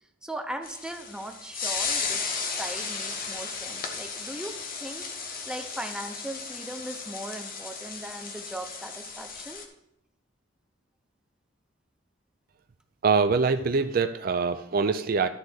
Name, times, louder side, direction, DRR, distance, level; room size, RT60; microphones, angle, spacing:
voice 1, 0.2-4.5 4.8-5.1 5.4-9.7, right 1 dB, 5° right, 5 dB, 0.7 m, -38 dB
sound 1, 0.6-9.6, left 5 dB, 50° left, 1.1 m, -35 dB
voice 2, 13.0-15.3, right 4 dB, 50° right, 9 dB, 0.4 m, -24 dB
11.5 x 4.0 x 6.2 m, 0.81 s
head